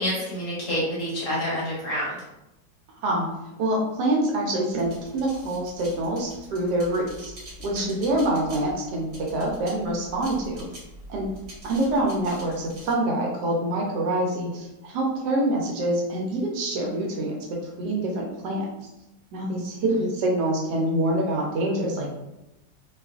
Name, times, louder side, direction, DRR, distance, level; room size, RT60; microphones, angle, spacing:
voice 1, 0.0-2.2 7.8-8.1 19.8-20.0, equal, 55° left, -6 dB, 1.1 m, -28 dB
voice 2, 3.6-7.3 7.6-10.6 11.1-11.3 11.6-17.4 17.8-18.7 19.3-22.1, right 1 dB, 75° right, -1 dB, 1.1 m, -26 dB
sound 1, 4.7-12.9, equal, 50° right, 1.2 m, -45 dB
2.9 x 2.4 x 2.3 m, 0.91 s
omnidirectional pair, 1.9 m